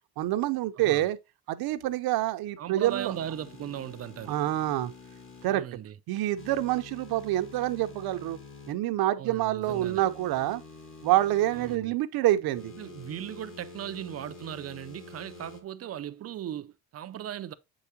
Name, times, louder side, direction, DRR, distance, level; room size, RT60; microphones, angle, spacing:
voice 1, 0.2-1.2 1.5-3.1 4.3-4.9 5.4-5.6 6.1-8.4 8.7-10.6 11.0-12.7, right 14 dB, 70° right, 0.8 m, -27 dB
voice 2, 0.8-1.1 2.6-4.4 5.4-6.0 9.1-10.0 11.5-11.9 12.8-17.5, right 10 dB, 40° right, 0.6 m, -38 dB
sound 1, 2.9-5.5 6.4-8.7 9.6-11.8 12.5-15.6, left 4 dB, 30° left, 1.6 m, -48 dB
7.7 x 4.9 x 2.7 m
cardioid pair, 130°, 38 cm